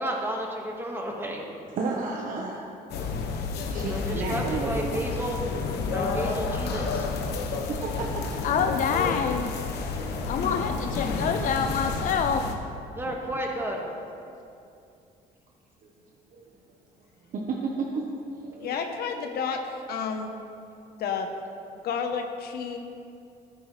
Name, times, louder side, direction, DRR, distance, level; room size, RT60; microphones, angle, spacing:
voice 1, 0.0-1.4 3.9-5.4 5.9-7.1 10.0-10.1 10.7-11.3 11.6-11.8 12.9-13.9, right 1 dB, 15° right, 0 dB, 1.7 m, -33 dB
voice 2, 1.8-2.6 3.0-3.2 3.7-5.0 7.8-8.2 13.1-13.4 16.3-16.4 17.3-18.1 18.4-18.8, right 4 dB, 50° right, -1 dB, 1.1 m, -32 dB
sound 1, 2.9-12.5, left 4 dB, 80° left, 1.1 m, -30 dB
voice 3, 8.4-9.5 10.3-12.6, left 6 dB, 50° left, 6 dB, 0.5 m, -26 dB
voice 4, 18.6-19.6 19.9-20.3 21.0-21.3 21.8-22.8, left 6 dB, 65° left, 5 dB, 1.0 m, -30 dB
14.0 x 8.9 x 3.3 m, 2.6 s
cardioid pair, 110°, 17 cm